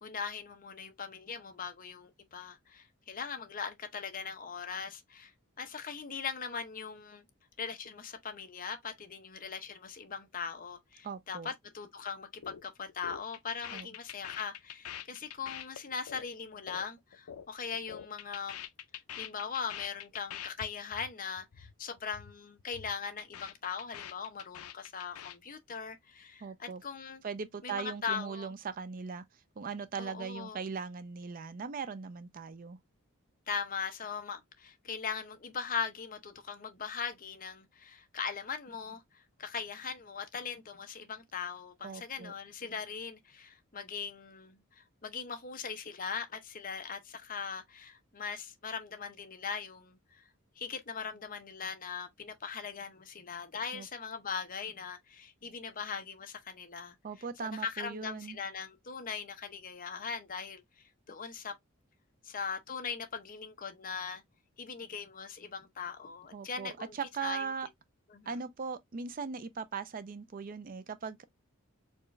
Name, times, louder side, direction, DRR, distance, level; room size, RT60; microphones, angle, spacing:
voice 1, 0.0-5.3 5.6-7.2 7.6-18.6 19.2-27.2 27.6-28.5 30.0-30.6 33.5-50.2 50.6-56.9 57.4-61.6 62.2-64.2 64.6-66.9 67.2-67.5 68.1-68.4, left 6 dB, 40° left, 0.8 m, -40 dB
voice 2, 11.0-11.5 13.7-13.9 26.4-26.8 27.2-29.2 29.6-32.8 41.8-42.3 53.7-53.9 57.0-58.4 66.3-67.7 68.3-71.2, right 5 dB, 40° right, 0.4 m, -39 dB
sound 1, 12.4-12.6 12.9-17.5 17.7-20.7 20.9-21.1 21.4-21.7 22.0-22.3 22.6-25.4, left 9 dB, 85° left, 0.5 m, -45 dB
4.4 x 2.4 x 3.1 m
head